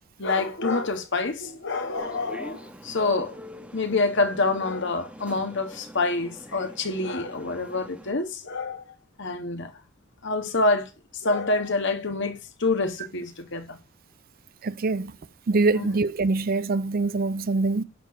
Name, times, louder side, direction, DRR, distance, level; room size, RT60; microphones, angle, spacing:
voice 1, 0.2-3.4 3.7-8.8 9.2-9.7 10.2-10.9 11.2-13.8 15.7-15.9, left 3 dB, 60° left, 1.6 m, -27 dB
sound 1, 2.0-8.1, equal, 5° right, 1.3 m, -44 dB
voice 2, 14.6-15.1 15.5-17.8, right 3 dB, 45° right, 0.5 m, -24 dB
10.0 x 4.5 x 6.5 m
head